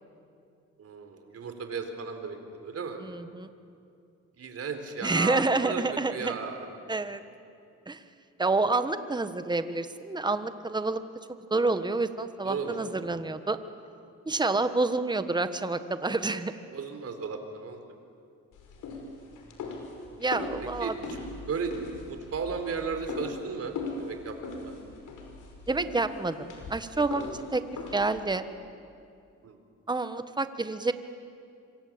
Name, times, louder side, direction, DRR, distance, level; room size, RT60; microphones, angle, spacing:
voice 1, 0.8-3.0 4.4-5.8 6.1-6.8 12.4-12.8 16.7-17.8 20.8-21.1 21.4-21.7 22.1-24.7 29.4-29.6, right 5 dB, 55° right, 7 dB, 4.0 m, -35 dB
voice 2, 3.0-3.5 5.0-6.3 6.9-7.2 7.9-8.0 8.4-11.0 11.5-13.6 14.3-16.5 20.2-20.9 25.7-27.6 27.9-28.4 29.9-30.9, right 3 dB, 15° right, 10 dB, 1.4 m, -28 dB
sound 1, 18.5-28.3, left 3 dB, 80° left, 5.4 m, -40 dB
26.0 x 24.5 x 8.9 m, 2.5 s
cardioid pair, 90°, 30 cm